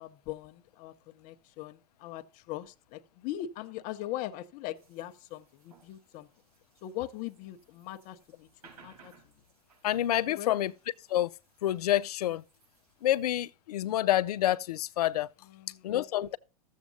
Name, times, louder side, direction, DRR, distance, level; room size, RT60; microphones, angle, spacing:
voice 1, 0.0-6.3 6.8-8.5 8.7-9.1 10.3-10.6 15.5-15.9, left 13 dB, 40° left, 0.7 m, -40 dB
sound 1, 4.8-13.5, right 5 dB, 70° right, 4.9 m, -62 dB
voice 2, 9.8-10.7 11.1-11.3 11.6-12.4 13.0-15.3 15.8-16.4, left 13 dB, 75° left, 0.5 m, -28 dB
14.5 x 7.3 x 2.7 m
hypercardioid pair, 115°, 20 cm